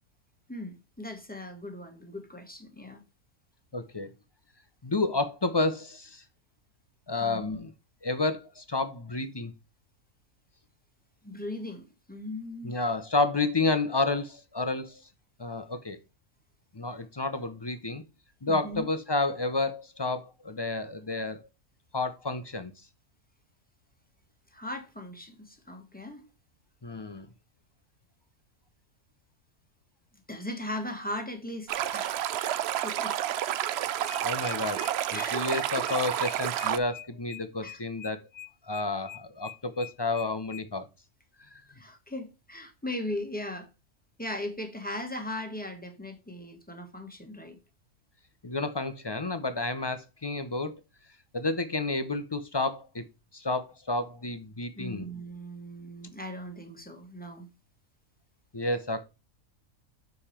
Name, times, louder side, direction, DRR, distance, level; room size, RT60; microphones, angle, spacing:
voice 1, 0.5-3.0 7.2-7.6 11.2-12.7 18.5-18.9 24.5-26.2 30.3-33.3 35.1-35.7 37.6-37.8 41.7-43.7 44.2-47.6 54.8-57.5, left 1 dB, 5° left, 1.4 m, -38 dB
voice 2, 3.7-4.1 4.8-6.2 7.1-7.7 8.0-9.5 12.6-15.0 15.4-16.0 16.7-18.0 18.4-21.4 21.9-22.7 26.8-27.3 34.2-34.8 35.1-38.2 38.6-40.9 48.4-50.7 51.3-53.0 53.3-55.0 58.5-59.0, left 3 dB, 30° left, 0.4 m, -30 dB
Stream, 31.7-36.8, right 11 dB, 65° right, 0.6 m, -30 dB
sound 1, 34.0-40.6, left 11 dB, 60° left, 0.9 m, -45 dB
6.9 x 5.3 x 4.3 m
omnidirectional pair, 1.5 m